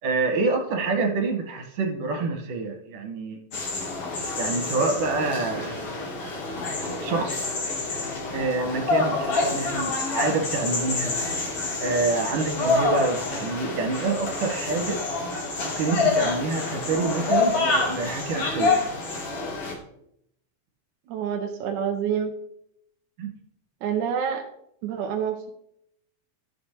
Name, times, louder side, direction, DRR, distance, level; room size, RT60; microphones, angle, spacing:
voice 1, 0.0-3.4 4.3-5.9 6.8-7.5 8.3-11.2 11.8-15.0 15.6-18.8 23.2-23.3, right 3 dB, 50° right, 1 dB, 2.7 m, -27 dB
sound 1, 3.5-19.7, left 3 dB, 45° left, 2.3 m, -27 dB
voice 2, 21.1-22.3 23.8-24.4 24.8-25.6, right 8 dB, 80° right, 4 dB, 1.7 m, -27 dB
13.0 x 6.3 x 3.4 m, 0.74 s
omnidirectional pair, 4.4 m